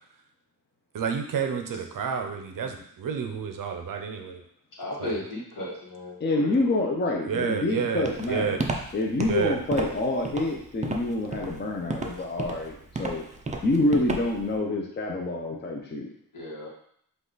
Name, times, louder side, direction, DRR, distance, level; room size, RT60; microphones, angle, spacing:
voice 1, 0.9-4.4 5.0-5.2 7.3-8.7 9.2-9.6, right 7 dB, 65° right, 5 dB, 0.6 m, -30 dB
voice 2, 4.8-6.7 16.3-16.7, left 1 dB, 65° left, -4 dB, 1.5 m, -35 dB
voice 3, 6.2-8.6 8.9-13.2 13.6-16.1, left 2 dB, 30° left, -1 dB, 0.5 m, -27 dB
Walk footsteps, 8.1-14.5, right 3 dB, 20° right, 0.4 m, -32 dB
5.3 x 2.4 x 3.9 m, 0.66 s
wide cardioid pair, 170°, 35 cm